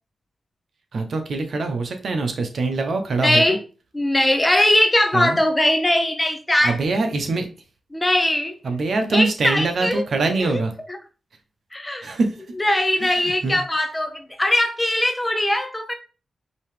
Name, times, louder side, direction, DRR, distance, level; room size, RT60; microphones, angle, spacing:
voice 1, 0.9-3.4 5.1-5.4 6.6-7.5 8.6-10.7 12.0-12.3 13.0-13.6, right 3 dB, 65° right, 0.9 m, -23 dB
voice 2, 3.2-3.6 3.9-6.8 7.9-8.6 9.1-10.0 10.4-10.6 11.7-12.1 12.6-15.9, left 1 dB, 15° left, 0.8 m, -20 dB
5.3 x 2.9 x 3.3 m
cardioid pair, 80°, 0 cm